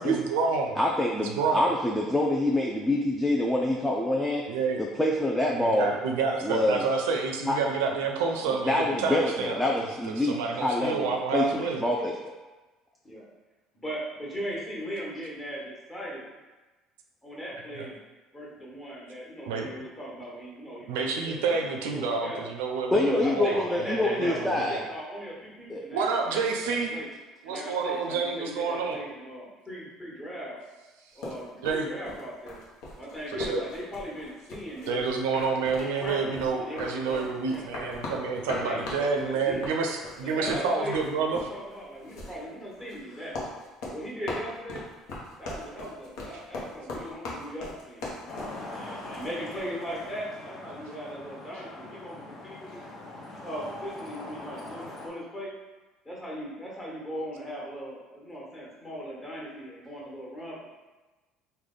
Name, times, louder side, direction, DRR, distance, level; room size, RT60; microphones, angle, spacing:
voice 1, 0.0-0.8 1.2-1.6 4.5-4.8 5.5-11.8 17.7-17.9 19.5-19.7 20.9-24.8 25.9-27.0 27.4-29.0 31.6-31.9 33.3-33.6 34.9-41.4, right 4 dB, 85° right, 2 dB, 0.4 m, -29 dB
voice 2, 0.8-4.4 4.8-5.9 6.4-6.9 7.5-7.6 8.6-12.1 22.9-24.8 25.7-25.9, left 1 dB, 10° left, -2 dB, 0.4 m, -26 dB
voice 3, 13.7-16.3 17.2-18.0 18.3-21.6 21.9-22.4 23.1-27.1 27.4-30.6 31.1-32.6 33.0-35.0 35.8-39.7 40.2-41.0 41.3-43.3 43.8-44.8 45.4-52.9 53.4-55.5 56.0-60.7, equal, 25° left, -5 dB, 1.3 m, -38 dB
sound 1, 31.2-49.7, left 2 dB, 75° left, 0.8 m, -40 dB
Traffic noise roadway noise, 48.3-55.1, left 2 dB, 50° left, 1.0 m, -42 dB
3.2 x 2.2 x 3.8 m, 1.2 s
supercardioid pair, 90°, 0 cm